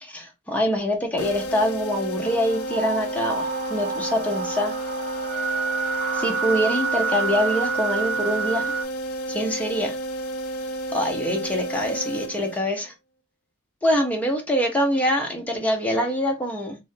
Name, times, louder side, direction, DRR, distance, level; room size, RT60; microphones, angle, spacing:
voice 1, 0.0-4.7 6.1-8.7 9.3-10.0 10.9-12.9 13.8-16.8, equal, 5° left, 0.8 m, -24 dB
sound 1, 1.2-12.9, right 1 dB, 70° left, 0.5 m, -31 dB
sound 2, 2.2-8.8, right 5 dB, 35° right, 0.6 m, -28 dB
2.7 x 2.6 x 3.5 m
head